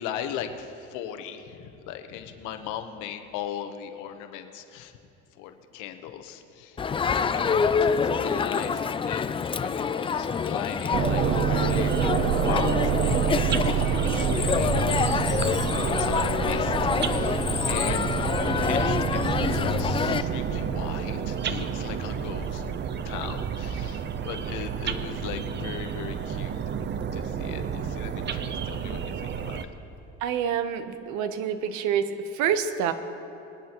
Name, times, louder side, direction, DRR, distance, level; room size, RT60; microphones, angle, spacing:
voice 1, 0.0-4.9 5.3-6.8 7.1-12.1 12.5-14.8 15.8-22.6 23.0-26.6 27.1-29.6, left 9 dB, 80° left, 7 dB, 1.0 m, -38 dB
Crowd, 6.8-20.2, left 6 dB, 20° left, 0.3 m, -26 dB
sound 1, 10.9-29.6, right 7 dB, 35° right, 0.6 m, -28 dB
voice 2, 30.2-32.9, right 8 dB, 70° right, 10 dB, 0.9 m, -27 dB
21.0 x 11.0 x 3.0 m, 2.8 s
cardioid pair, 110°, 30 cm